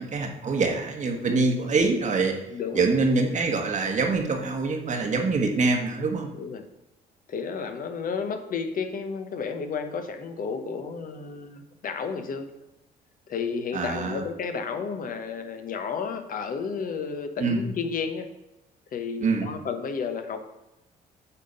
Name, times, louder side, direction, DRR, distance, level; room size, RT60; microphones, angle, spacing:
voice 1, 0.0-2.3 2.7-6.3 13.7-14.2 17.4-17.6 19.2-19.6, right 3 dB, 45° right, 3 dB, 1.4 m, -25 dB
voice 2, 2.5-2.8 6.3-6.7 7.3-12.5 13.3-18.3 18.9-20.4, left 5 dB, 55° left, 7 dB, 1.0 m, -32 dB
8.3 x 3.7 x 5.4 m, 0.92 s
supercardioid pair, 75°, 17 cm